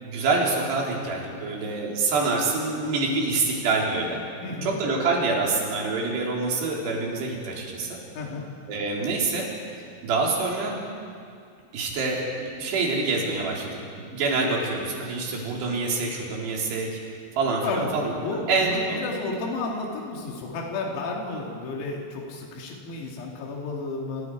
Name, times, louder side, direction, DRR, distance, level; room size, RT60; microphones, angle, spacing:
voice 1, 0.0-4.2 4.6-7.9 8.7-9.5 10.0-10.8 11.7-17.0 17.4-19.0, right 3 dB, 55° right, -2 dB, 5.5 m, -26 dB
voice 2, 4.4-4.8 8.2-8.5 17.6-17.9 18.2-24.3, left 3 dB, 85° left, -1 dB, 5.1 m, -32 dB
29.0 x 28.0 x 4.8 m, 2.3 s
omnidirectional pair, 5.9 m